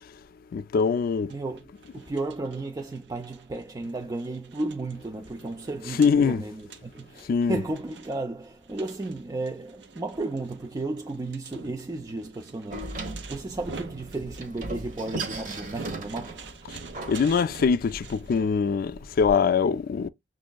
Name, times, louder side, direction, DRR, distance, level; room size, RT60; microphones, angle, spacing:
voice 1, 0.5-1.3 5.9-6.4 7.3-7.6 17.1-20.1, left 5 dB, 55° left, 0.3 m, -23 dB
voice 2, 1.3-1.6 1.9-16.6, right 2 dB, 20° right, 0.4 m, -34 dB
sound 1, 1.3-18.5, right 4 dB, 70° right, 0.7 m, -46 dB
Door, 12.7-19.3, right 2 dB, 45° right, 1.0 m, -38 dB
6.1 x 2.6 x 2.2 m
head